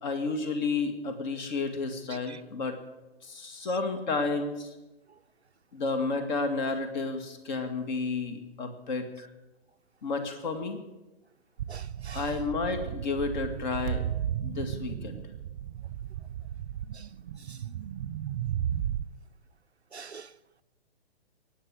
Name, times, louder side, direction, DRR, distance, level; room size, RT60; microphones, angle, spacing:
voice 1, 0.0-2.8 3.2-4.7 5.7-9.3 10.0-10.8 12.1-14.0 14.4-15.2, left 3 dB, 45° left, 2.3 m, -31 dB
voice 2, 2.1-2.4 11.7-12.3 16.9-17.1 17.5-17.6 19.9-20.3, right 5 dB, 90° right, 0.6 m, -46 dB
sound 1, 11.6-19.0, right 10 dB, 35° right, 0.5 m, -34 dB
23.0 x 9.1 x 6.6 m
figure-of-eight pair, 120°, 32 cm